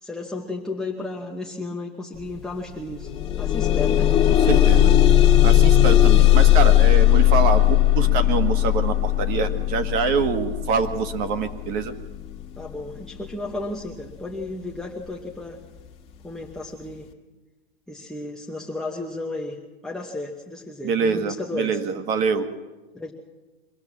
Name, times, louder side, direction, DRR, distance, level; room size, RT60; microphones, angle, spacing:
voice 1, 0.0-4.1 12.6-15.6 16.2-17.1 17.9-21.8 22.9-23.1, left 2 dB, ahead, -3 dB, 1.0 m, -33 dB
sound 1, 2.2-2.3 2.7-13.7 14.5-14.6 15.1-15.2, left 13 dB, 20° left, 1.8 m, -18 dB
voice 2, 4.5-5.0 5.4-11.9 20.8-22.5, right 5 dB, 30° right, 9 dB, 1.6 m, -25 dB
23.5 x 16.5 x 7.3 m, 1.2 s
supercardioid pair, 160°, 30 cm